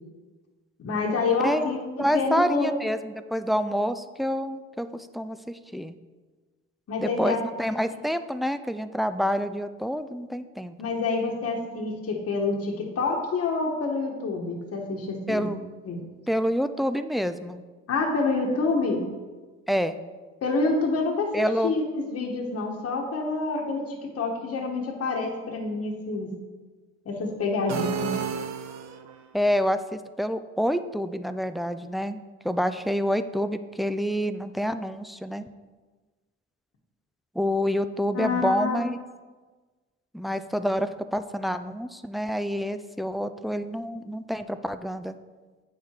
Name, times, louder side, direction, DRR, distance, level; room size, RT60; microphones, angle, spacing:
voice 1, 0.8-2.7 6.9-7.4 10.8-15.4 15.9-16.0 17.9-19.0 20.4-26.3 27.0-28.1 38.1-38.8, left 3 dB, 50° left, 0 dB, 1.2 m, -27 dB
voice 2, 2.0-5.9 7.0-10.9 15.3-15.6 16.3-17.6 19.7-20.0 21.3-21.8 29.3-35.4 37.4-39.0 40.1-45.2, equal, ahead, 11 dB, 0.3 m, -27 dB
sound 1, 27.7-29.3, right 7 dB, 60° right, 0.6 m, -32 dB
8.3 x 4.8 x 4.4 m, 1.3 s
cardioid pair, 90°, 30 cm